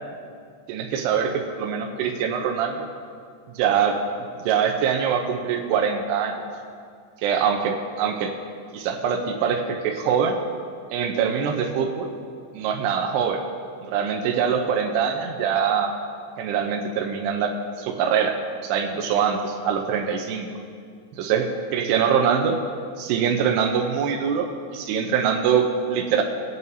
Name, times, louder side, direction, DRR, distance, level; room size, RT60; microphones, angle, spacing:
voice 1, 0.7-2.9 3.5-4.0 4.4-6.4 7.2-8.3 8.7-10.4 10.9-12.1 12.5-13.4 13.8-15.9 16.4-18.4 18.6-20.5 21.1-22.6 23.0-26.2, right 7 dB, 80° right, 2 dB, 2.4 m, -23 dB
23.0 x 9.1 x 2.7 m, 2.2 s
omnidirectional pair, 5.5 m